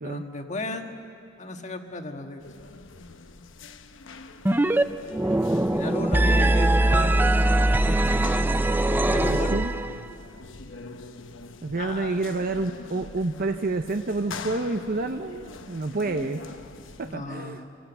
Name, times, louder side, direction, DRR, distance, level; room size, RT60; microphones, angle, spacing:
voice 1, 0.0-1.0 1.4-2.4 5.5-7.3 7.8-8.3 9.0-9.6 11.8-12.2 17.0-17.7, left 2 dB, 35° left, 5 dB, 1.5 m, -35 dB
sound 1, 2.4-17.2, left 3 dB, 65° left, 1.0 m, -43 dB
sound 2, 4.5-4.8 5.1-10.1, right 1 dB, 10° right, 0.5 m, -21 dB
voice 2, 9.3-9.7 11.6-16.4 17.0-17.6, right 3 dB, 45° right, 7 dB, 0.7 m, -29 dB
27.0 x 18.0 x 8.0 m, 2.5 s
head